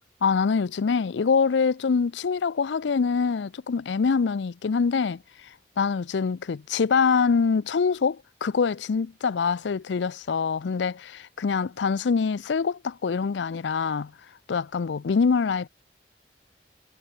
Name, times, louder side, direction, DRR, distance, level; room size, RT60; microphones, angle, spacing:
voice 1, 0.2-5.2 5.8-14.1 14.5-15.7, left 5 dB, 85° left, 0.5 m, -24 dB
head